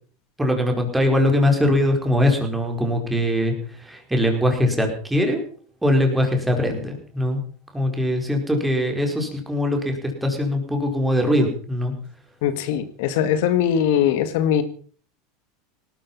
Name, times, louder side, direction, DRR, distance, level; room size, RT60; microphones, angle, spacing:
voice 1, 0.4-5.4 5.8-7.4 7.7-11.9, left 1 dB, 5° right, 3 dB, 4.8 m, -21 dB
voice 2, 12.4-14.6, left 9 dB, 70° left, 11 dB, 1.9 m, -21 dB
18.5 x 12.5 x 5.6 m, 0.43 s
supercardioid pair, 135°, 0 cm